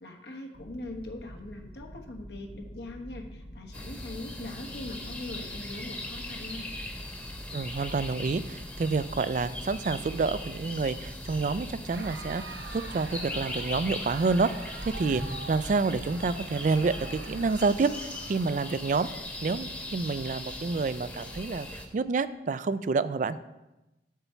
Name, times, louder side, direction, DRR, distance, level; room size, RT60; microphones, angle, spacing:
voice 1, 0.0-6.8, left 2 dB, 70° left, 2 dB, 1.3 m, -41 dB
sound 1, 0.5-17.5, equal, 40° left, 0.8 m, -45 dB
sound 2, 3.7-21.9, left 1 dB, 10° left, 1.0 m, -40 dB
voice 2, 7.5-12.4 12.7-14.5 14.8-15.2 15.5-17.9 18.3-19.1 19.4-23.4, right 4 dB, 45° right, 15 dB, 0.3 m, -28 dB
Crowd, 11.7-19.3, right 4 dB, 70° right, 0.7 m, -46 dB
8.2 x 4.5 x 6.9 m, 0.99 s
head